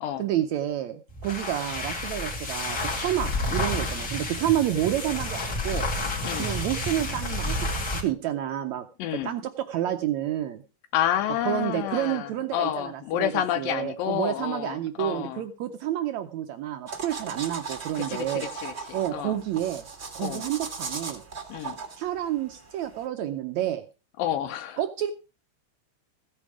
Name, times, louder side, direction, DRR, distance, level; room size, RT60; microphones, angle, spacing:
voice 1, 0.2-5.9 6.4-8.9 9.1-10.6 11.4-18.5 18.9-19.8 20.1-21.2 22.0-23.8 24.8-25.1, right 12 dB, 80° right, 7 dB, 1.6 m, -29 dB
sound 1, 1.1-8.1, left 1 dB, 30° left, 2.6 m, -30 dB
voice 2, 9.0-9.3 10.9-15.4 18.0-19.3 20.2-20.4 21.5-21.8 24.2-24.8, left 11 dB, 80° left, 10 dB, 2.5 m, -29 dB
sound 2, 16.9-23.1, right 5 dB, 45° right, 0.8 m, -38 dB
15.0 x 8.9 x 4.8 m, 0.33 s
omnidirectional pair, 4.1 m